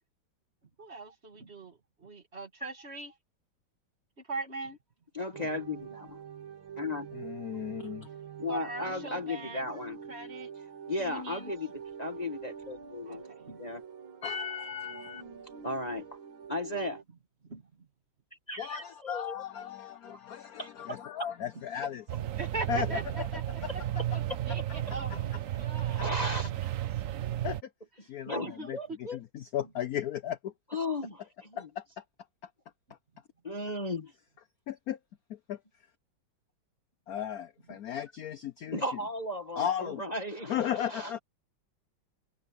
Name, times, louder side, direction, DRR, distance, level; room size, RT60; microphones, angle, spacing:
voice 1, 0.8-3.1 4.3-4.8 5.4-5.6 8.5-9.7 10.1-10.5 11.0-11.5 13.0-13.8 17.4-17.9 22.4-23.0 23.3-23.6 24.1-26.1 28.5-29.0 37.7-37.8, right 2 dB, 30° right, 2.6 m, -41 dB
voice 2, 5.1-6.2 6.8-7.1 8.4-10.0 10.9-13.2 13.6-13.8 15.6-16.2 16.5-17.0 18.5-19.4 20.1-20.2 20.6-21.0 25.9-26.5 28.2-29.2 30.7-31.2 33.4-34.1 38.7-41.1, left 1 dB, 20° left, 1.5 m, -35 dB
sound 1, 5.3-17.0, right 7 dB, 90° right, 2.5 m, -46 dB
voice 3, 7.1-8.1 14.2-15.2 18.6-22.1 22.7-23.3 23.6-23.7 25.0-25.2 27.4-27.7 28.0-28.8 29.1-30.5 31.5-32.0 34.7-35.0 35.3-35.6 37.1-38.8 39.6-40.0 40.5-41.2, left 9 dB, 60° left, 1.0 m, -35 dB
sound 2, 22.1-27.6, right 12 dB, 65° right, 0.8 m, -33 dB
omnidirectional pair, 2.2 m